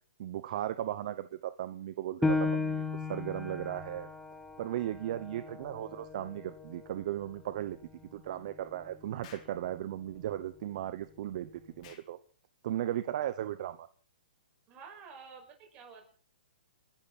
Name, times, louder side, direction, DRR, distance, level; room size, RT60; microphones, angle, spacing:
voice 1, 0.2-2.8 3.1-4.1 4.6-7.8 8.1-12.2 12.6-13.9, right 12 dB, 45° right, 13 dB, 0.9 m, -36 dB
Piano, 2.2-7.4 7.9-8.0 8.6-9.1, left 3 dB, 5° left, 1.4 m, -35 dB
Explosion, 9.2-9.6 11.8-12.1, left 8 dB, 40° left, 3.4 m, -53 dB
voice 2, 14.7-16.1, right 5 dB, 25° right, 3 dB, 5.8 m, -50 dB
29.0 x 11.5 x 4.2 m, 0.41 s
hypercardioid pair, 155°, 5 cm